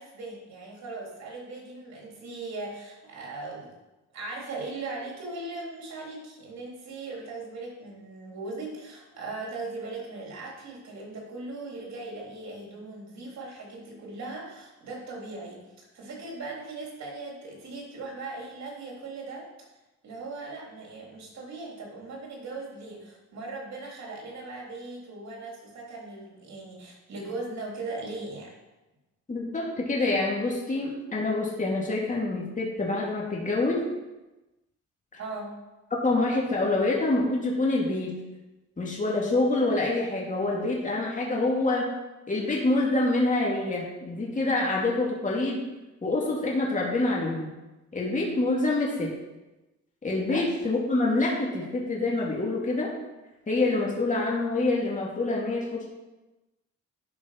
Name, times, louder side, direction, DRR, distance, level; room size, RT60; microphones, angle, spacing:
voice 1, 0.0-3.8 4.1-19.7 20.0-28.5 35.2-35.5 50.3-50.4, right 3 dB, 65° right, -2 dB, 3.4 m, -39 dB
voice 2, 29.3-33.8 36.0-38.1 38.8-41.9 42.3-45.6 46.0-47.5 47.9-49.1 50.0-52.9 53.5-55.9, left 2 dB, 25° left, -4 dB, 2.4 m, -26 dB
11.0 x 5.0 x 5.8 m, 1.1 s
cardioid pair, 90°, 30 cm